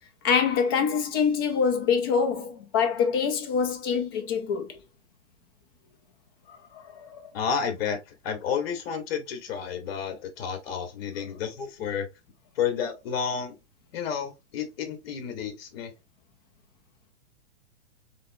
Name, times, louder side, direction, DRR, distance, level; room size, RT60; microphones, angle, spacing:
voice 1, 0.2-4.8 6.5-7.3, left 6 dB, 20° left, 0.4 m, -25 dB
voice 2, 7.3-12.1 12.6-13.5 13.9-15.9, left 7 dB, 50° left, 1.5 m, -31 dB
4.0 x 3.6 x 2.7 m
hypercardioid pair, 140°, 38 cm